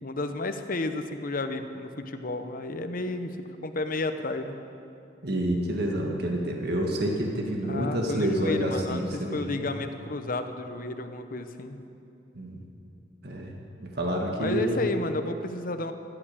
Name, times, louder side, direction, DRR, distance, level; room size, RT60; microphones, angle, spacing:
voice 1, 0.0-3.4 3.6-4.6 7.6-11.8 14.4-15.9, left 2 dB, 50° left, 8 dB, 0.9 m, -32 dB
voice 2, 5.2-9.7 12.3-12.6 13.2-13.5 13.8-14.9, right 1 dB, 65° right, 0 dB, 1.7 m, -28 dB
15.0 x 11.0 x 7.2 m, 2.7 s
head